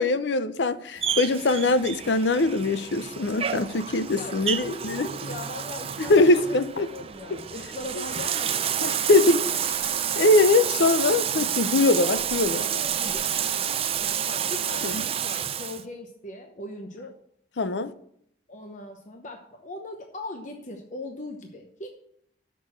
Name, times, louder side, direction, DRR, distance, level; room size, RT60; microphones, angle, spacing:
voice 1, 0.0-5.1 6.0-6.9 8.8-9.8 10.2-12.6 14.8-15.0 17.6-17.9, left 2 dB, 85° left, 0.6 m, -22 dB
Bathtub (filling or washing), 1.0-15.8, right 9 dB, 35° right, 0.4 m, -29 dB
voice 2, 4.1-8.9 12.0-13.4 14.3-17.2 18.5-21.9, left 1 dB, 45° left, 0.9 m, -40 dB
6.9 x 6.1 x 7.2 m
head